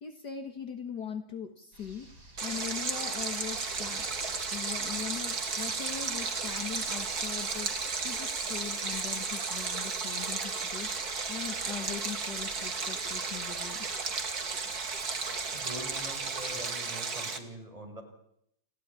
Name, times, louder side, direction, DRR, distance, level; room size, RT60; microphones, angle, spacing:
voice 1, 0.0-4.1 4.5-13.9, left 7 dB, 55° left, 8 dB, 2.1 m, -41 dB
sound 1, 1.7-16.6, equal, 75° right, 7.0 m, -54 dB
Stream, 2.4-17.4, right 4 dB, 50° right, 2.6 m, -34 dB
voice 2, 15.5-18.0, right 1 dB, 15° right, 4 dB, 5.9 m, -43 dB
29.5 x 15.5 x 9.8 m, 0.75 s
omnidirectional pair, 2.2 m